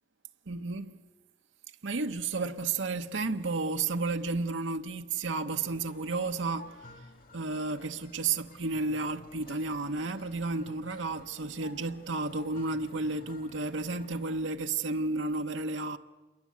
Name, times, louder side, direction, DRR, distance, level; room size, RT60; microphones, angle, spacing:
voice 1, 0.5-1.0 1.8-6.9 7.3-16.0, right 3 dB, 85° right, 0.9 m, -32 dB
sound 1, 5.5-14.4, left 2 dB, 50° left, 1.6 m, -53 dB
28.0 x 22.5 x 8.5 m
head